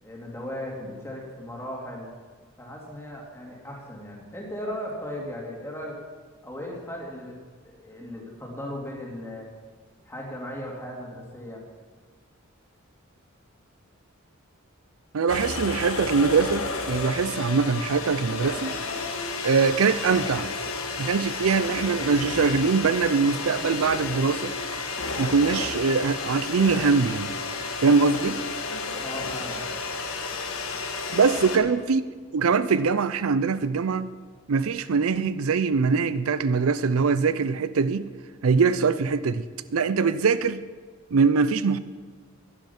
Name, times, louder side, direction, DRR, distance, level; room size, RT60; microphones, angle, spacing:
voice 1, 0.0-2.1 2.6-6.0 6.4-7.4 7.6-9.5 10.0-11.6 29.0-29.6 31.3-31.6, left 1 dB, 10° left, 2.5 m, -37 dB
voice 2, 15.1-18.7 19.4-20.5 21.0-24.5 25.2-27.3 27.8-28.4 31.1-32.0 32.3-34.1 34.5-38.0 38.4-39.4 39.7-40.6 41.1-41.8, right 5 dB, 85° right, 0.5 m, -22 dB
sound 1, 15.3-31.6, left 4 dB, 85° left, 1.4 m, -32 dB
11.0 x 10.5 x 5.9 m
head